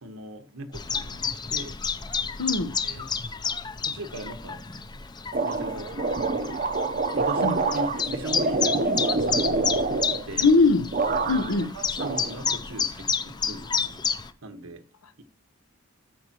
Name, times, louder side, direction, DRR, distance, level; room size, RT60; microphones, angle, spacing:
voice 1, 0.0-1.8 2.8-3.1 3.8-4.6 4.9-5.0 5.4-6.6 7.2-9.6 10.1-10.5 11.5-14.1 14.4-14.8, right 1 dB, 80° right, 1.4 m, -39 dB
Chirp tweet, 0.7-14.3, left 6 dB, 20° left, 0.5 m, -31 dB
voice 2, 2.4-2.7 7.4-7.6 8.9-9.0 10.4-10.9 11.3-11.7, left 3 dB, 85° left, 0.9 m, -21 dB
sound 1, 5.3-10.6 10.9-11.6 12.0-12.9, right 3 dB, 40° right, 0.7 m, -27 dB
14.5 x 5.6 x 2.9 m
head